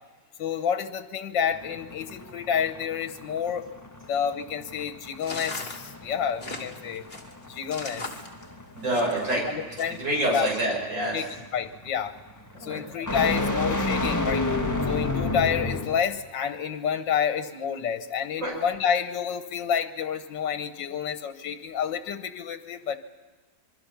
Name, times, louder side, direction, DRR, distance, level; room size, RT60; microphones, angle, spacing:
voice 1, 0.4-3.7 4.1-7.0 7.5-8.0 9.5-10.0 10.3-10.5 11.1-11.3 11.5-12.1 12.6-14.4 14.9-23.0, left 8 dB, 80° left, 9 dB, 1.7 m, -29 dB
sound 1, 1.5-16.1, left 2 dB, 10° left, 1.3 m, -32 dB
sound 2, 5.2-9.4 9.8-10.3, left 2 dB, 30° left, 3.0 m, -38 dB
voice 2, 8.7-9.4 10.0-11.2 12.6-12.8 18.4-18.5, right 1 dB, 80° right, -2 dB, 7.6 m, -26 dB
26.5 x 22.5 x 5.8 m, 1.3 s
omnidirectional pair, 1.9 m